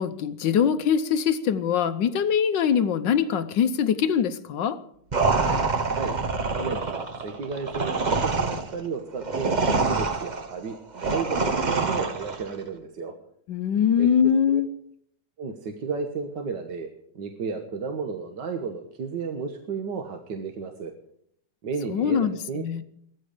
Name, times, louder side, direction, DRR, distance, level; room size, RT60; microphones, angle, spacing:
voice 1, 0.0-4.8 13.5-14.7 21.9-22.8, left 8 dB, 65° left, 11 dB, 1.3 m, -23 dB
sound 1, 5.1-12.5, right 4 dB, 75° right, 0.4 m, -26 dB
voice 2, 5.8-6.2 6.5-9.5 9.8-13.1 14.0-14.1 14.5-14.6 15.4-16.9 17.1-20.9 21.6-22.6, right 5 dB, 55° right, 4 dB, 1.7 m, -33 dB
17.0 x 14.0 x 5.0 m, 0.69 s
omnidirectional pair, 2.4 m